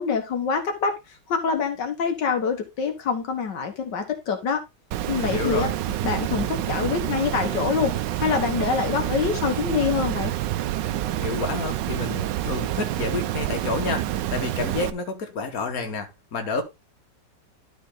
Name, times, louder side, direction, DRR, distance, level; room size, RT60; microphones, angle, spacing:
voice 1, 0.0-4.6 5.1-5.7 6.0-7.9 8.2-10.3, left 6 dB, 75° left, 1.8 m, -25 dB
Water, 4.9-14.9, right 13 dB, 85° right, 1.3 m, -28 dB
voice 2, 5.2-5.8 11.2-16.6, left 4 dB, 55° left, 1.9 m, -29 dB
12.0 x 4.5 x 3.8 m
omnidirectional pair, 1.9 m